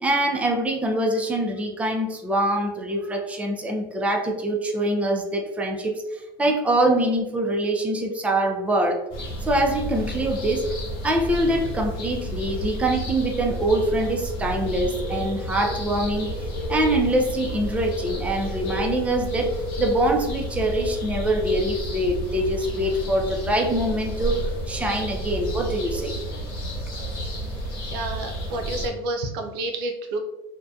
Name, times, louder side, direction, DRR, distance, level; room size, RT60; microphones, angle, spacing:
voice 1, 0.0-9.0 9.4-10.7 11.0-16.3 16.7-26.2, right 1 dB, 10° right, 2 dB, 0.4 m, -24 dB
sound 1, 9.1-28.9, right 1 dB, 80° left, 1.0 m, -31 dB
voice 2, 27.9-30.2, right 2 dB, 80° right, 4 dB, 0.5 m, -29 dB
2.6 x 2.1 x 2.3 m, 0.95 s
supercardioid pair, 110°, 12 cm